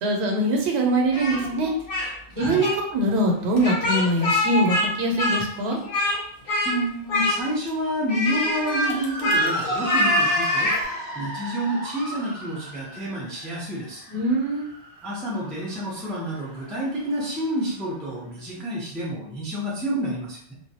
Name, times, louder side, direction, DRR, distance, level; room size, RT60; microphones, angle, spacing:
voice 1, 0.0-1.7 2.3-5.8 14.1-14.7, right 1 dB, 75° right, 1 dB, 0.8 m, -23 dB
Speech, 1.1-2.1 2.4-2.8 3.6-4.9 5.2-6.2 6.5-6.8 7.1-7.7 8.1-10.8, left 1 dB, 60° left, 0.7 m, -24 dB
voice 2, 2.4-2.7 6.4-10.7 11.2-14.1 15.0-20.5, equal, ahead, -5 dB, 0.3 m, -29 dB
Motor vehicle (road) / Siren, 8.8-17.4, equal, 40° right, 0.6 m, -34 dB
2.2 x 2.0 x 2.7 m, 0.65 s
omnidirectional pair, 1.1 m